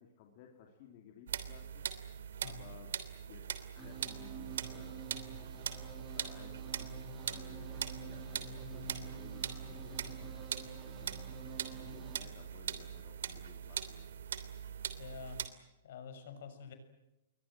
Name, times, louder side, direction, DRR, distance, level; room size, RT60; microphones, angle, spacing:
voice 1, 0.0-1.9 2.4-5.0 6.1-10.5 11.8-14.1, left 8 dB, 35° left, 2 dB, 3.1 m, -57 dB
sound 1, 1.3-15.5, right 8 dB, 70° right, 3.1 m, -42 dB
sound 2, 3.8-12.2, right 4 dB, 5° right, 4.1 m, -49 dB
voice 2, 15.0-15.4 15.8-16.7, left 6 dB, 50° left, 9 dB, 6.4 m, -48 dB
29.5 x 23.0 x 7.6 m, 0.94 s
hypercardioid pair, 175°, 0 cm